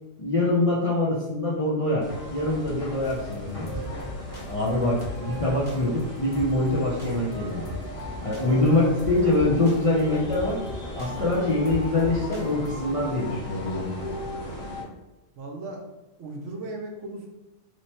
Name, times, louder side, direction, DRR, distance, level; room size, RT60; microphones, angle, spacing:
voice 1, 0.2-3.7 4.5-7.7 8.2-10.6 10.9-14.0, left 2 dB, 45° left, -7 dB, 0.4 m, -24 dB
sound 1, 2.0-14.8, equal, 80° left, 1.5 m, -37 dB
sound 2, 3.0-12.7, left 2 dB, 25° left, 0.8 m, -40 dB
voice 2, 3.7-4.0 8.4-8.9 15.4-15.8 16.2-17.3, right 2 dB, 70° right, 2 dB, 0.9 m, -37 dB
3.1 x 2.2 x 4.1 m, 1.0 s
omnidirectional pair, 1.3 m